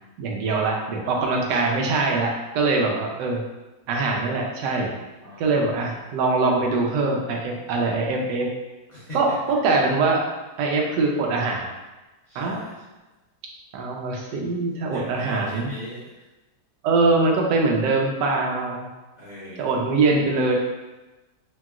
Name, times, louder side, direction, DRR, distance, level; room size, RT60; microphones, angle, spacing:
voice 1, 0.2-3.4 3.9-4.9 5.4-8.5 9.1-10.2 10.6-11.7 12.3-12.6 13.7-15.7 16.8-18.9 19.6-20.5, right 3 dB, 80° right, 0 dB, 1.2 m, -23 dB
voice 2, 5.2-5.8 8.9-9.3 12.3-12.9 14.9-16.2 19.2-19.7, equal, 55° left, -11 dB, 0.4 m, -39 dB
2.9 x 2.9 x 2.3 m, 1.1 s
omnidirectional pair, 1.9 m